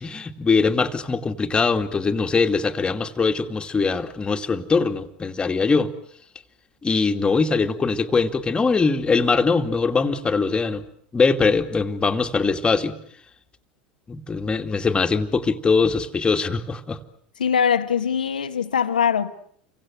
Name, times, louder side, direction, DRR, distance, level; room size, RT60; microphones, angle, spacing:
voice 1, 0.0-5.9 6.8-10.8 11.1-12.9 14.1-17.0, left 4 dB, 20° left, 2.5 m, -22 dB
voice 2, 17.4-19.3, left 7 dB, 80° left, 1.6 m, -22 dB
30.0 x 24.5 x 8.0 m
figure-of-eight pair, 80°, 5 cm